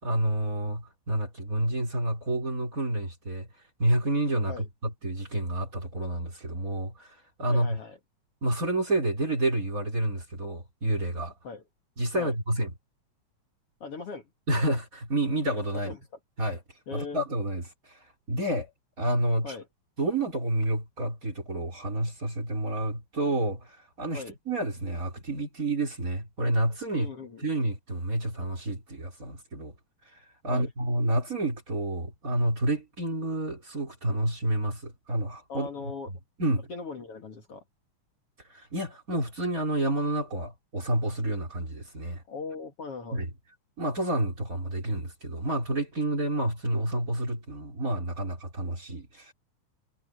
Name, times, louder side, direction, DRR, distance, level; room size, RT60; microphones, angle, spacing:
voice 1, 0.0-3.5 3.8-7.8 8.4-11.3 12.0-12.7 14.5-15.9 16.4-16.6 16.9-17.9 18.3-18.7 19.0-19.6 20.0-27.1 27.4-29.7 30.4-35.7 36.4-36.7 38.5-42.2 43.1-43.3 43.8-49.3, right 1 dB, 25° right, 3.8 m, -29 dB
voice 2, 7.5-8.0 11.4-11.6 12.2-12.3 13.8-14.3 15.9-16.0 16.9-17.2 19.4-19.7 24.1-24.3 26.9-27.4 30.5-30.7 35.5-36.1 36.7-37.6 42.3-43.2, left 4 dB, 50° left, 2.8 m, -39 dB
omnidirectional pair, 3.7 m